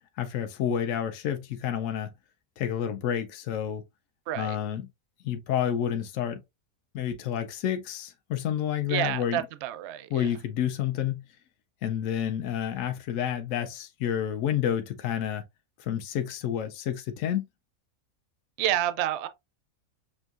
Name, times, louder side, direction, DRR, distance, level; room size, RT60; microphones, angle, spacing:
voice 1, 0.2-2.1 2.6-3.8 4.4-4.9 5.2-6.4 6.9-9.4 10.1-11.2 11.8-15.4 15.8-17.4, left 9 dB, 75° left, 0.9 m, -29 dB
voice 2, 4.3-4.6 8.9-10.3 18.6-19.3, right 12 dB, 65° right, 0.7 m, -29 dB
6.1 x 2.6 x 2.4 m
omnidirectional pair, 1.5 m